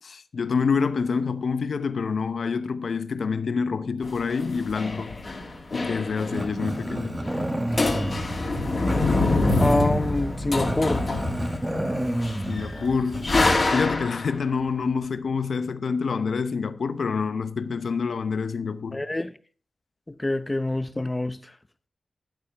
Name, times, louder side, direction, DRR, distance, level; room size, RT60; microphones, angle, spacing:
voice 1, 0.0-5.2 5.7-7.3 12.5-13.4 13.7-19.0, left 5 dB, 75° left, 0.8 m, -27 dB
sound 1, 4.0-6.6 6.8-6.9 7.1-7.5 7.7-14.3, left 2 dB, 40° left, 2.7 m, -26 dB
Growling, 6.3-13.6, right 1 dB, 15° right, 1.6 m, -30 dB
voice 2, 9.6-11.0 18.9-19.3 20.2-21.5, left 1 dB, 20° left, 0.8 m, -26 dB
12.0 x 11.5 x 3.5 m
wide cardioid pair, 125°, 0 cm